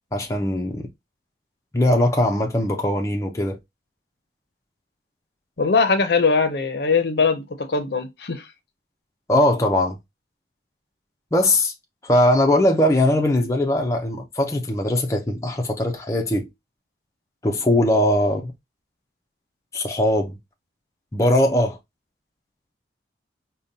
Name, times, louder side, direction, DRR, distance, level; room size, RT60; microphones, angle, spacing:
voice 1, 0.1-0.9 1.7-3.6 9.3-10.0 11.3-11.7 12.0-16.5 17.4-18.5 19.7-20.4 21.1-21.8, left 1 dB, 15° left, 0.5 m, -20 dB
voice 2, 5.6-8.5, left 4 dB, 65° left, 0.6 m, -21 dB
5.1 x 2.2 x 2.7 m
head